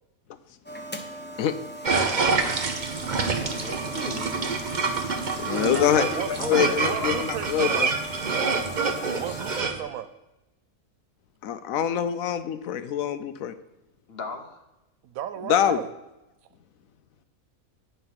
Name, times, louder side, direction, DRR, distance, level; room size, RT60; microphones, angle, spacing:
sound 1, 0.6-9.6, equal, 10° left, 0.5 m, -39 dB
sound 2, 1.8-9.8, right 4 dB, 40° right, 0.8 m, -27 dB
voice 1, 3.4-4.8 5.5-7.2 14.1-14.6, left 3 dB, 45° left, 5 dB, 1.1 m, -36 dB
voice 2, 5.4-6.1 6.4-7.9 11.4-13.5 15.5-15.8, left 9 dB, 75° left, 12 dB, 0.9 m, -25 dB
voice 3, 6.1-7.9 9.2-10.1 15.0-15.9, right 10 dB, 75° right, 12 dB, 1.0 m, -34 dB
9.3 x 5.5 x 5.8 m, 0.97 s
omnidirectional pair, 1.5 m